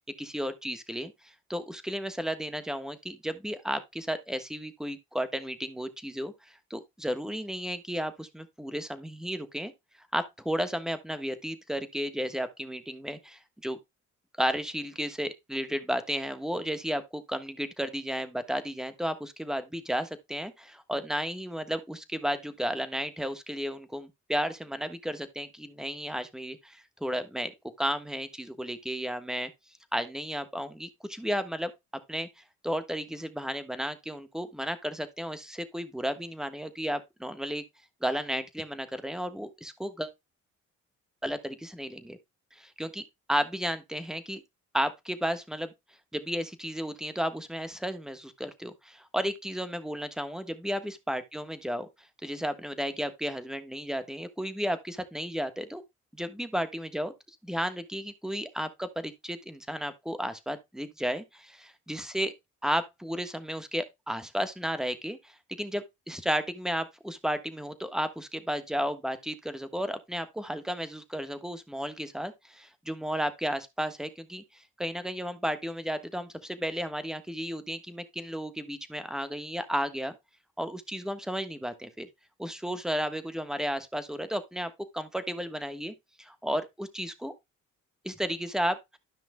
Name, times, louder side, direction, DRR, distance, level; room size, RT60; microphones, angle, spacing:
voice 1, 0.2-6.3 6.7-9.7 10.1-13.8 14.4-27.5 27.8-29.5 29.9-31.7 32.1-32.3 32.6-37.6 38.0-40.1 41.2-42.2 42.6-44.4 44.7-45.7 46.1-51.9 52.2-55.8 56.1-57.1 57.4-62.3 62.6-80.1 80.6-82.1 82.4-87.3 88.0-89.0, equal, ahead, 1.3 m, -33 dB
13.0 x 5.8 x 2.2 m
cardioid pair, 90°, 30 cm